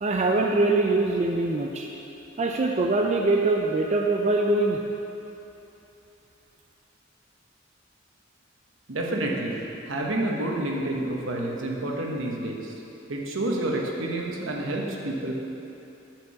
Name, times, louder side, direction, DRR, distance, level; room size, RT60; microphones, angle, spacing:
voice 1, 0.0-1.9 2.4-4.8, right 2 dB, 35° right, 1 dB, 0.4 m, -23 dB
voice 2, 8.9-9.6 9.9-12.7 13.1-15.3, right 1 dB, 75° right, -1 dB, 1.0 m, -29 dB
7.8 x 4.5 x 6.9 m, 3.0 s
head